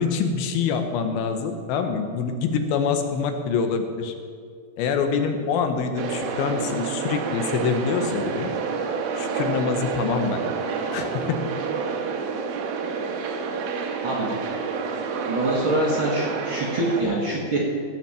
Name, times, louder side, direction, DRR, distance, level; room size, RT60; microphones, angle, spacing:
voice 1, 0.0-4.1 4.8-8.5 9.2-10.5 10.9-11.4, left 6 dB, 80° left, 6 dB, 2.7 m, -25 dB
sound 1, 6.0-17.0, right 5 dB, 75° right, 2.7 m, -29 dB
voice 2, 15.3-17.7, right 1 dB, 45° right, -5 dB, 1.8 m, -24 dB
16.5 x 5.7 x 6.7 m, 2.1 s
omnidirectional pair, 4.4 m